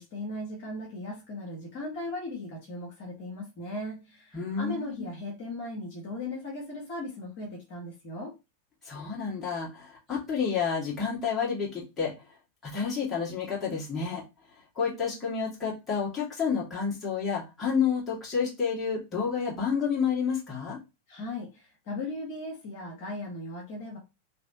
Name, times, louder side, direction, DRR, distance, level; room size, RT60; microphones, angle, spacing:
voice 1, 0.0-8.3 21.1-24.0, left 2 dB, 45° left, -2 dB, 1.5 m, -37 dB
voice 2, 4.3-5.1 8.8-12.1 12.6-14.2 14.8-20.8, left 6 dB, 20° left, -5 dB, 1.9 m, -30 dB
3.3 x 3.1 x 2.9 m, 0.26 s
figure-of-eight pair, 90°, 0 cm